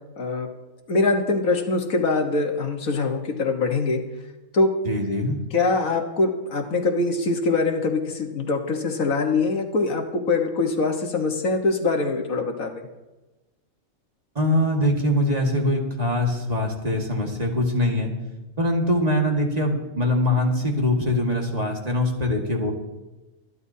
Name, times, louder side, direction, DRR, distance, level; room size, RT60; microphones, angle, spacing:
voice 1, 0.2-0.5 0.9-4.0 4.5-4.7 5.5-12.7, left 3 dB, 75° left, 3 dB, 1.8 m, -23 dB
voice 2, 4.8-5.4 14.4-18.1 18.6-22.7, left 1 dB, 30° right, 0 dB, 1.8 m, -23 dB
24.5 x 11.0 x 2.8 m, 1.1 s
omnidirectional pair, 1.5 m